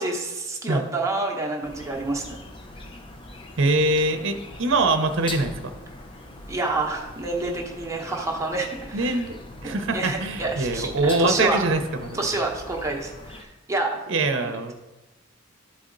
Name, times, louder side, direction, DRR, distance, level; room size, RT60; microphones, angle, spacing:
voice 1, 0.0-2.4 6.5-9.2 9.6-11.6 12.1-14.1 14.4-14.7, right 2 dB, 15° right, 0 dB, 0.9 m, -28 dB
sound 1, 1.6-13.4, left 1 dB, 25° left, 0.6 m, -41 dB
voice 2, 3.6-5.7 8.9-9.4 9.6-12.3 14.1-14.7, right 2 dB, 60° right, 7 dB, 0.7 m, -23 dB
12.0 x 4.2 x 3.8 m, 1.1 s
head